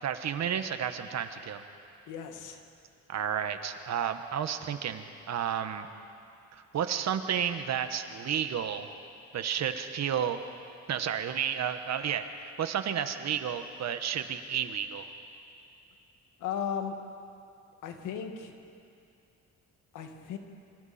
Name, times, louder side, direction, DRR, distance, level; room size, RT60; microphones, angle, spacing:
voice 1, 0.0-1.6 3.1-5.9 6.7-8.9 9.3-10.4 10.9-15.1, right 8 dB, 60° right, 8 dB, 1.4 m, -31 dB
voice 2, 2.1-2.6 16.4-16.9 17.8-18.5 19.9-20.4, left 8 dB, 90° left, 5 dB, 1.9 m, -35 dB
26.0 x 25.0 x 4.4 m, 2.5 s
cardioid pair, 90°, 30 cm